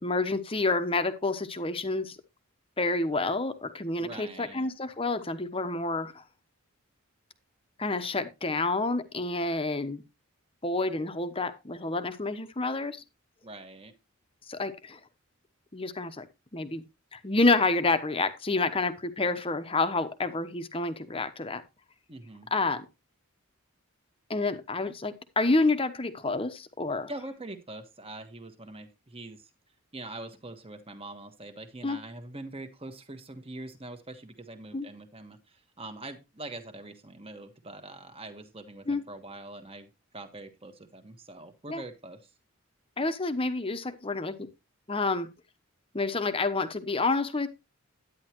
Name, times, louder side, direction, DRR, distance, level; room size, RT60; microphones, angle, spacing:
voice 1, 0.0-2.2 2.8-6.2 7.8-10.0 10.6-13.0 14.5-15.0 15.7-16.3 16.5-16.8 17.1-21.6 22.5-22.9 24.3-27.1 31.8-32.0 34.7-34.9 38.9-39.0 41.7-41.8 43.0-44.5 44.9-45.3 45.9-47.5, left 3 dB, 25° left, 1.0 m, -28 dB
voice 2, 4.0-4.7 13.4-13.9 22.1-22.5 27.1-29.5 29.9-42.3, right 2 dB, 25° right, 1.4 m, -43 dB
11.0 x 9.8 x 3.0 m
head